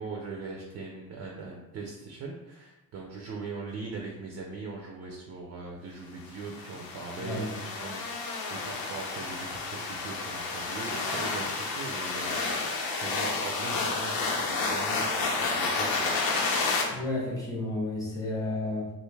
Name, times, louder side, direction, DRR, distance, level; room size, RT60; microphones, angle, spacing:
voice 1, 0.0-16.1, right 4 dB, 45° right, 0 dB, 0.4 m, -40 dB
sound 1, 6.4-16.8, left 3 dB, 75° left, 0.7 m, -30 dB
voice 2, 7.2-7.5 16.9-18.9, left 2 dB, 10° left, -5 dB, 0.8 m, -32 dB
3.4 x 2.5 x 3.2 m, 0.97 s
cardioid pair, 175°, 36 cm